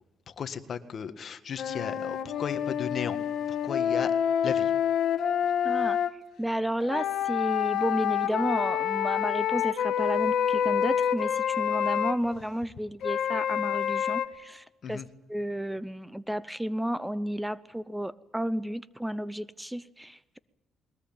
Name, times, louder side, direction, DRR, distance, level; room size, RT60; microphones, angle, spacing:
voice 1, 0.3-3.2 3.5-4.2 4.4-4.7 5.8-5.9 14.8-15.1, left 7 dB, 55° left, 10 dB, 1.8 m, -35 dB
sound 1, 1.6-6.1 6.8-12.2 13.0-14.3, left 9 dB, 75° left, 1.7 m, -27 dB
voice 2, 5.6-6.0 6.4-15.0 15.3-20.4, equal, 5° right, 17 dB, 0.7 m, -32 dB
21.5 x 19.5 x 8.9 m, 1.1 s
cardioid pair, 90°, 0 cm